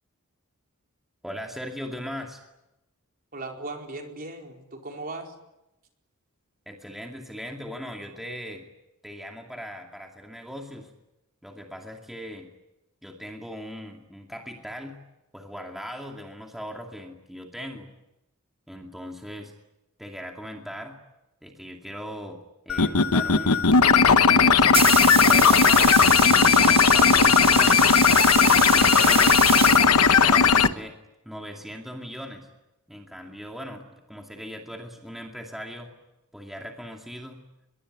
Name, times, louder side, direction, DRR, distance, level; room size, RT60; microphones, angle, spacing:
voice 1, 1.2-2.4 6.7-8.6 9.0-10.9 11.4-12.5 13.0-15.0 15.3-17.9 18.7-19.5 20.0-21.0 21.4-23.7 24.1-28.1 28.5-29.4 29.8-31.0 31.2-32.5 32.9-35.9 36.3-37.4, equal, ahead, 1 dB, 2.4 m, -39 dB
voice 2, 3.3-5.3, right 2 dB, 40° right, 2 dB, 4.5 m, -37 dB
sound 1, 22.7-30.7, left 6 dB, 75° left, 1.1 m, -17 dB
sound 2, 24.4-30.4, right 7 dB, 25° right, 1.1 m, -28 dB
24.5 x 22.5 x 9.9 m, 0.93 s
head